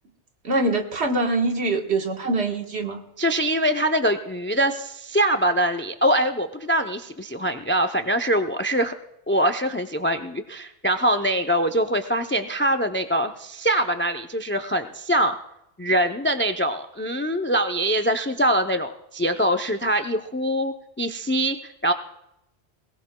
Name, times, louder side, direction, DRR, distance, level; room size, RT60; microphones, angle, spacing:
voice 1, 0.4-3.0, right 2 dB, 75° right, 3 dB, 1.6 m, -24 dB
voice 2, 3.2-8.9 9.3-15.4 15.8-21.9, right 1 dB, 15° left, 7 dB, 0.4 m, -23 dB
21.5 x 18.5 x 2.2 m, 0.83 s
omnidirectional pair, 1.1 m